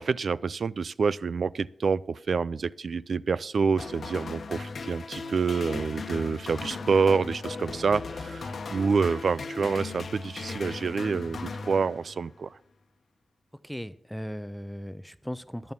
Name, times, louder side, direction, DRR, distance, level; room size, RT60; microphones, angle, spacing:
voice 1, 0.0-12.6, right 5 dB, 70° right, 20 dB, 0.3 m, -27 dB
sound 1, 3.8-12.4, left 4 dB, 75° left, 1.0 m, -37 dB
voice 2, 13.6-15.7, equal, ahead, 14 dB, 0.6 m, -37 dB
11.0 x 7.2 x 5.8 m, 0.73 s
cardioid pair, 70°, 0 cm